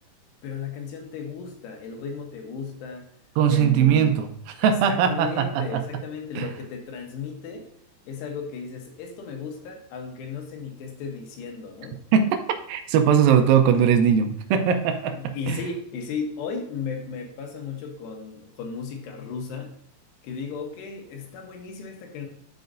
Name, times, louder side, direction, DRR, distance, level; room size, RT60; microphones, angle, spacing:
voice 1, 0.4-3.1 3.5-4.2 4.6-7.7 8.1-12.0 15.1-19.8 20.2-22.3, left 5 dB, 85° left, 2 dB, 3.2 m, -35 dB
voice 2, 3.4-4.3 4.6-5.8 6.4-6.5 12.1-12.4 12.7-15.6, right 8 dB, 80° right, 6 dB, 2.1 m, -20 dB
11.5 x 5.1 x 2.6 m, 0.68 s
omnidirectional pair, 4.8 m